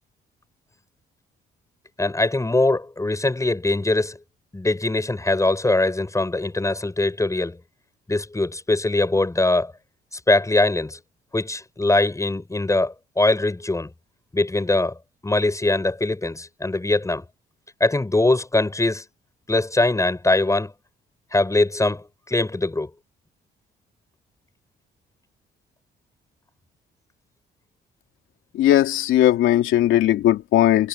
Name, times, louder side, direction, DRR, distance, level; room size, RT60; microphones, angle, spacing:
voice 1, 2.0-4.2 4.5-7.6 8.1-9.7 10.3-11.0 11.3-13.9 14.3-15.0 15.2-17.2 17.8-19.0 19.5-20.7 21.3-22.9, left 2 dB, 15° left, 7.3 m, -22 dB
voice 2, 28.5-30.9, left 13 dB, 85° left, 3.0 m, -18 dB
cardioid pair, 90°, 20 cm